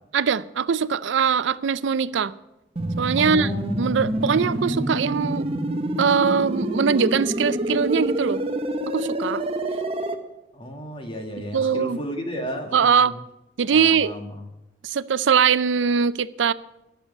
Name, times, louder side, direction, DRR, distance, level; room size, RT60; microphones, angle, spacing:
voice 1, 0.1-2.3 3.0-3.5 3.8-5.5 6.0-8.4 8.9-9.4 11.5-12.0 12.7-13.2 13.6-14.1 14.8-16.5, right 6 dB, 75° right, 0.5 m, -21 dB
sound 1, 2.8-10.2, right 1 dB, 30° right, 0.9 m, -27 dB
voice 2, 3.2-4.6 10.5-13.2 13.7-14.5, equal, 30° left, 1.9 m, -34 dB
11.5 x 6.8 x 9.6 m
head